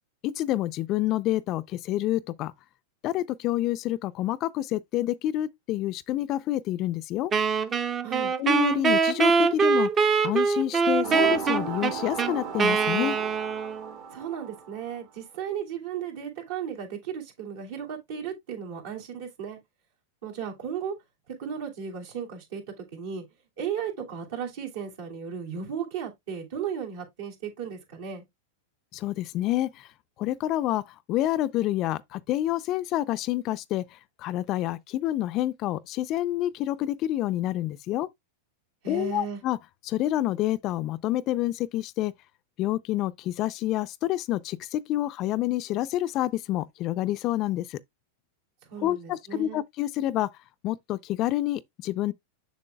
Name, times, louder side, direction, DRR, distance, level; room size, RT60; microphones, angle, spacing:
voice 1, 0.2-2.5 3.0-7.3 8.4-9.9 10.2-13.2 28.9-29.9 30.2-30.8 31.1-38.1 38.9-39.6 39.8-42.1 42.6-47.8 48.8-50.3 50.6-52.1, left 14 dB, 40° left, 0.4 m, -28 dB
Wind instrument woodwind instrument, 7.3-13.9, right 5 dB, 25° right, 0.6 m, -23 dB
voice 2, 8.0-8.3 14.1-19.6 20.2-20.9 21.3-23.2 23.6-28.2 38.8-39.4 48.7-49.6, right 7 dB, 70° right, 2.9 m, -35 dB
sound 1, 11.0-15.0, right 6 dB, 55° right, 1.7 m, -35 dB
7.0 x 6.3 x 2.2 m
hypercardioid pair, 110°, 0 cm